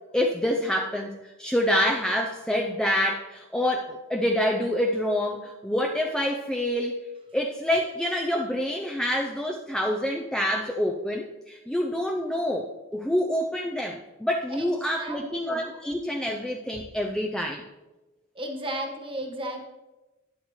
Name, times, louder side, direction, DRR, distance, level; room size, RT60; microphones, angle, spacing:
voice 1, 0.1-7.0 7.3-17.7, equal, 5° left, 1 dB, 0.5 m, -27 dB
voice 2, 14.5-15.6 18.3-19.6, right 1 dB, 25° right, 2 dB, 1.4 m, -35 dB
12.0 x 9.8 x 3.2 m, 1.1 s
head